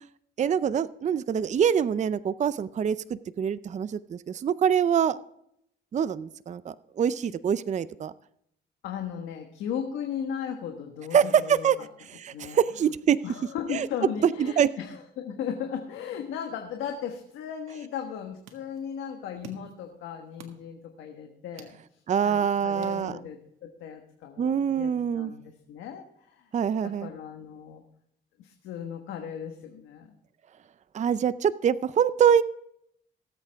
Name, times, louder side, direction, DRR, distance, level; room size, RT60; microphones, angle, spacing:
voice 1, 0.4-5.2 5.9-8.1 11.1-11.8 12.1-13.2 13.7-13.9 14.4-14.7 22.1-23.2 24.4-25.3 26.5-27.1 30.9-32.4, right 8 dB, 35° right, 15 dB, 0.5 m, -25 dB
voice 2, 8.8-11.9 12.3-12.6 13.2-26.5 26.8-27.8 28.4-30.1, left 8 dB, 90° left, 3 dB, 1.4 m, -37 dB
sound 1, 18.0-23.6, right 6 dB, 80° right, 1.7 m, -53 dB
18.5 x 8.3 x 3.5 m, 0.74 s
cardioid pair, 90°, 20 cm